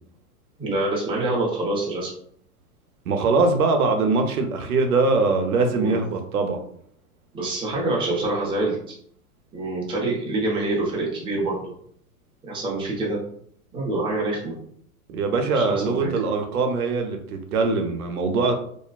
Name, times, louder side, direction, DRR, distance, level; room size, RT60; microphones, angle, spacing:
voice 1, 0.6-2.1 5.7-6.0 7.3-8.9 9.5-11.7 12.4-13.2 13.7-14.5 15.5-16.1, right 2 dB, 10° right, -3 dB, 0.6 m, -26 dB
voice 2, 3.1-6.6 15.1-18.5, right 3 dB, 80° right, 5 dB, 0.7 m, -22 dB
2.4 x 2.2 x 2.3 m, 0.64 s
hypercardioid pair, 115°, 44 cm